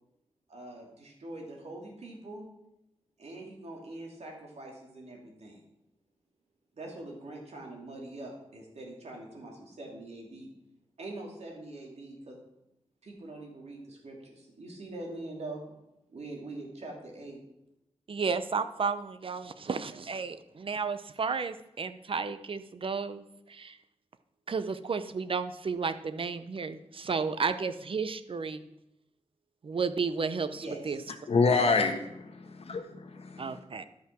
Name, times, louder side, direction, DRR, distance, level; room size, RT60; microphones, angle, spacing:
voice 1, 0.5-2.5 3.2-5.6 6.8-10.5 11.0-12.4 13.0-15.6 16.1-17.4 30.5-31.1 31.4-31.6, right 2 dB, 65° right, -1 dB, 2.7 m, -43 dB
voice 2, 18.1-23.8 24.5-28.7 29.6-31.0 33.4-33.8, right 5 dB, 50° right, 11 dB, 0.7 m, -33 dB
voice 3, 31.3-33.6, left 4 dB, 60° left, 5 dB, 1.3 m, -27 dB
11.5 x 5.7 x 6.0 m, 0.86 s
wide cardioid pair, 100°, 12 cm